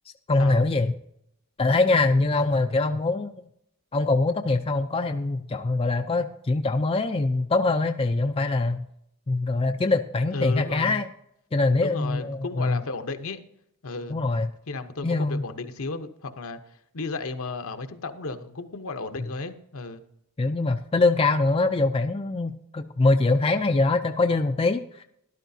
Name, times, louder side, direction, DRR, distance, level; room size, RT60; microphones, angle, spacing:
voice 1, 0.3-0.9 1.6-3.3 3.9-8.8 9.3-11.1 11.5-12.8 14.1-14.5 15.0-15.5 20.4-25.0, left 3 dB, 25° left, 6 dB, 0.4 m, -23 dB
voice 2, 10.3-11.0 11.8-13.4 13.8-14.2 14.7-20.0, left 3 dB, 65° left, 8 dB, 0.9 m, -34 dB
13.5 x 11.5 x 2.7 m, 0.76 s
head